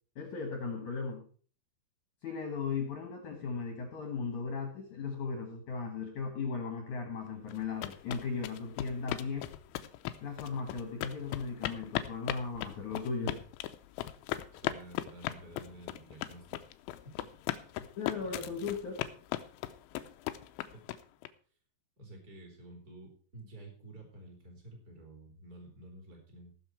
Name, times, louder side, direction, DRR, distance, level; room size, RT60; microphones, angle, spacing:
voice 1, 0.2-1.3 2.2-9.5 10.2-13.4 17.8-19.0, left 5 dB, 60° left, 4 dB, 2.2 m, -37 dB
sound 1, 7.5-21.3, left 14 dB, 85° left, 3.0 m, -38 dB
voice 2, 14.5-16.6 17.5-17.6 18.2-18.7 20.7-20.8 22.0-26.5, right 1 dB, 20° right, 1 dB, 3.4 m, -51 dB
17.5 x 6.8 x 4.6 m, 0.43 s
omnidirectional pair, 5.2 m